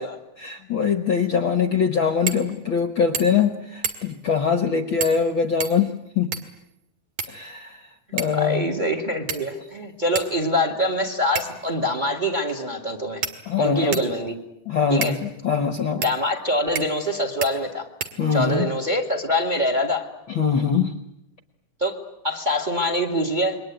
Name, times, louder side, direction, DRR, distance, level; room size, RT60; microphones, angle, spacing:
voice 1, 0.4-6.3 7.3-7.8 8.1-8.7 13.5-14.0 14.7-16.0 18.2-18.7 20.3-20.9, left 6 dB, 55° left, 8 dB, 1.6 m, -23 dB
sound 1, 2.3-2.5 2.8-2.9 3.1-3.5 3.8-4.2 5.0-5.3 5.6-6.6 7.2-7.8 8.2-8.5 9.3-9.7 10.2-10.3 11.4-11.7 12.5-12.6 13.2-14.2 15.0-15.2 16.0-16.2 16.8-17.1 17.4-17.5 18.0-18.6, right 6 dB, 60° right, 3.1 m, -31 dB
voice 2, 8.3-13.2 13.6-14.3 14.9-15.2 16.0-17.9 18.3-20.1 21.8-22.0 22.2-23.6, equal, 15° right, 6 dB, 1.9 m, -24 dB
28.5 x 22.5 x 9.2 m, 0.83 s
omnidirectional pair, 3.5 m